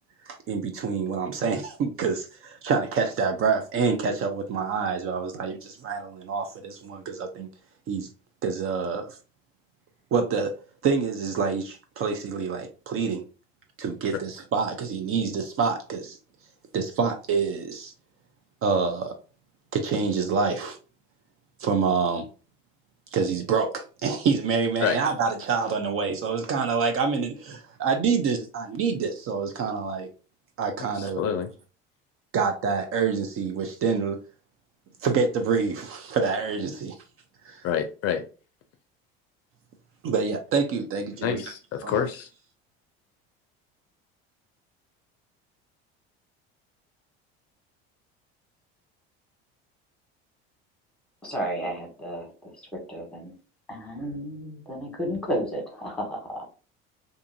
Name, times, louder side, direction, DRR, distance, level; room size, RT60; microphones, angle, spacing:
voice 1, 0.3-7.5 7.9-8.1 8.4-9.2 10.1-10.5 10.8-13.2 13.8-16.2 16.7-17.9 18.6-19.2 19.7-20.8 21.6-22.3 23.1-30.1 30.6-31.2 32.3-34.2 35.0-37.0 37.4-37.6 40.0-41.4 41.8-42.0, right 5 dB, 45° right, 0.5 m, -27 dB
voice 2, 31.0-31.5 37.6-38.3 41.2-42.3, left 8 dB, 50° left, 0.5 m, -27 dB
voice 3, 51.2-52.3 52.7-53.3 53.7-56.5, equal, 5° left, 1.3 m, -32 dB
2.5 x 2.5 x 2.6 m
supercardioid pair, 85°, 31 cm